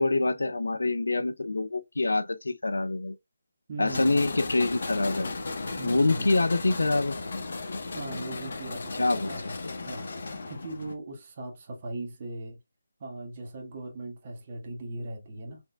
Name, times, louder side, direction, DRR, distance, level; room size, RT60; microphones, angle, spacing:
voice 1, 0.0-3.2 3.8-5.3 5.8-7.2 9.0-9.3, left 2 dB, 80° left, 0.5 m, -26 dB
voice 2, 3.7-4.3 5.8-6.3 7.9-9.6 9.8-10.1 10.5-12.6 13.0-15.6, right 2 dB, 35° right, 1.5 m, -39 dB
sound 1, 3.9-10.9, left 3 dB, 55° left, 1.0 m, -35 dB
4.4 x 3.4 x 2.2 m
figure-of-eight pair, 160°, 0 cm